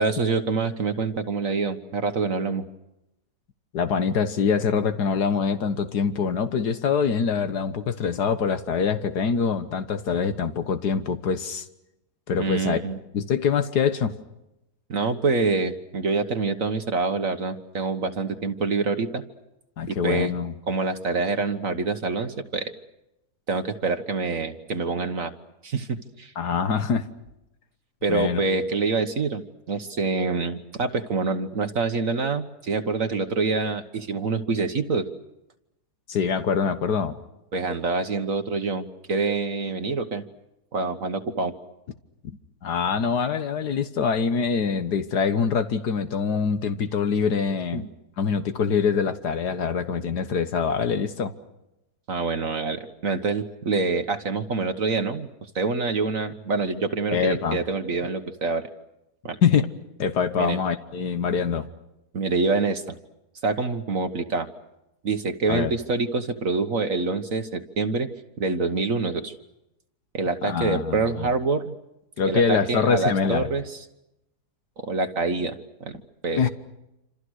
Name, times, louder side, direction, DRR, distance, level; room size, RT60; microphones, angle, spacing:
voice 1, 0.0-2.6 12.4-13.0 14.9-19.2 19.9-20.3 20.7-22.7 23.5-25.3 25.6-26.3 28.0-29.4 29.7-35.1 37.5-40.2 40.7-41.5 47.7-47.9 52.1-55.3 55.5-58.7 59.2-59.4 60.4-60.6 62.1-63.0 63.4-64.5 65.0-68.1 68.4-69.3 70.1-71.7 72.3-73.8 74.8-76.4, right 4 dB, 55° right, 7 dB, 1.7 m, -26 dB
voice 2, 3.7-11.7 12.3-12.8 13.1-14.1 19.8-20.5 26.4-27.1 28.1-28.4 36.1-37.2 42.6-47.9 48.2-51.3 57.1-57.6 59.4-59.7 60.0-61.7 65.5-65.7 70.4-71.3 72.2-73.5 76.3-76.5, left 6 dB, 80° left, 9 dB, 1.9 m, -24 dB
28.0 x 27.0 x 6.4 m, 0.88 s
omnidirectional pair, 1.7 m